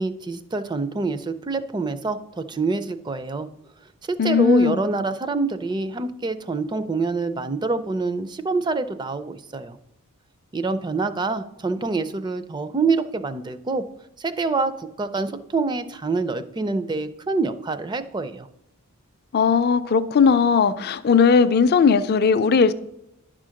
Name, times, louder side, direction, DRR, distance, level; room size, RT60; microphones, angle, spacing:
voice 1, 0.0-3.5 4.1-9.8 10.5-13.8 14.2-18.5, right 3 dB, 20° right, 0.4 m, -26 dB
voice 2, 4.2-4.8 19.3-22.7, left 5 dB, 45° left, 0.4 m, -18 dB
10.5 x 3.7 x 6.3 m
head